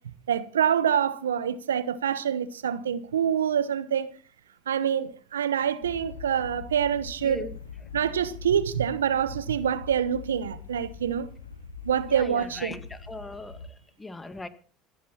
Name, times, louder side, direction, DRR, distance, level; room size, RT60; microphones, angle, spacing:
voice 1, 0.3-4.1 4.7-7.5 7.9-11.3 11.8-12.7, right 8 dB, 85° right, 1.0 m, -26 dB
sound 1, 5.8-13.7, left 5 dB, 85° left, 1.5 m, -43 dB
voice 2, 7.2-7.5 12.1-14.5, left 2 dB, 15° left, 2.2 m, -39 dB
26.5 x 10.0 x 4.3 m
hypercardioid pair, 70°, 0 cm